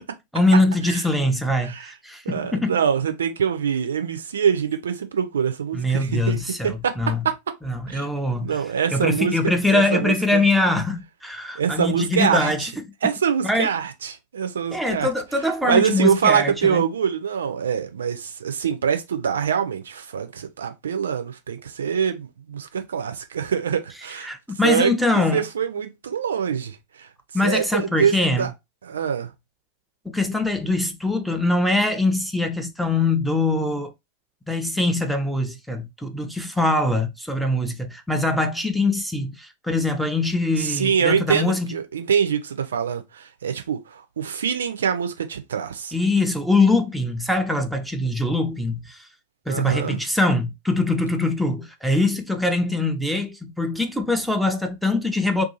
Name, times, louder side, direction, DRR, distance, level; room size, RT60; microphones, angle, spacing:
voice 1, 0.3-2.8 5.7-7.3 7.6-8.6 8.9-12.8 13.4-13.7 14.7-16.9 24.2-25.4 27.3-28.5 30.0-33.9 34.5-41.8 45.9-49.1 49.5-55.4, left 2 dB, ahead, 0.5 m, -23 dB
voice 2, 2.3-6.4 6.6-6.9 7.2-7.3 7.9-8.1 8.4-9.3 9.7-10.4 11.6-12.5 13.0-15.1 15.7-24.3 24.6-24.9 25.3-27.1 27.4-28.5 28.8-29.3 40.6-45.9 49.5-50.0, right 7 dB, 65° right, 0.4 m, -24 dB
2.6 x 2.4 x 2.7 m
figure-of-eight pair, 90°, 0 cm